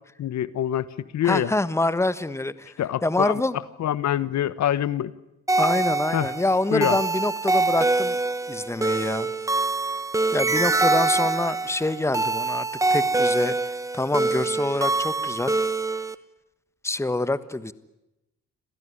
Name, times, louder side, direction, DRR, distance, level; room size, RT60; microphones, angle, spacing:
voice 1, 0.2-1.5 2.8-3.3 3.8-5.1 6.1-6.3 6.7-7.0, left 11 dB, 65° left, 18 dB, 1.1 m, -25 dB
voice 2, 1.2-2.7 3.0-3.6 5.6-8.2 8.5-9.3 10.3-13.6 13.9-15.5 16.8-17.7, left 2 dB, 10° left, 15 dB, 1.4 m, -26 dB
sound 1, 5.5-16.1, right 3 dB, 10° right, 1.3 m, -24 dB
27.5 x 17.0 x 9.9 m, 0.91 s
cardioid pair, 90°, 30 cm